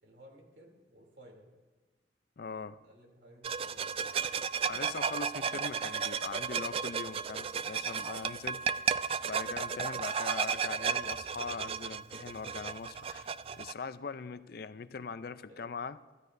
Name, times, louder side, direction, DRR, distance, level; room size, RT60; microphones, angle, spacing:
voice 1, 0.0-1.6 2.8-4.3 15.5-15.7, equal, 70° right, 1 dB, 3.0 m, -57 dB
voice 2, 2.4-2.8 4.7-8.6 9.3-13.3 13.6-16.0, left 5 dB, 55° left, 13 dB, 0.5 m, -41 dB
sound 1, 3.4-13.7, right 6 dB, 35° right, 0.3 m, -34 dB
26.0 x 13.0 x 2.6 m, 1.2 s
head